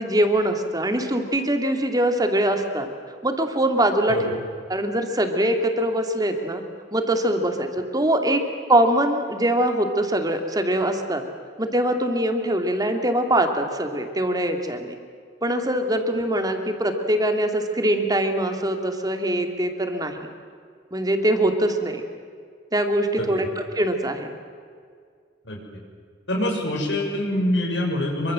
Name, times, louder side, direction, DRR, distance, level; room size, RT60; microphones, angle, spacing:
voice 1, 0.0-2.9 3.2-4.2 4.7-6.6 6.9-8.4 8.7-11.2 11.6-14.9 15.4-20.3 20.9-22.0 22.7-24.3, right 1 dB, 20° right, 5 dB, 2.7 m, -23 dB
voice 2, 26.3-28.3, left 1 dB, 90° left, 0 dB, 6.6 m, -25 dB
27.0 x 24.5 x 7.7 m, 2.1 s
head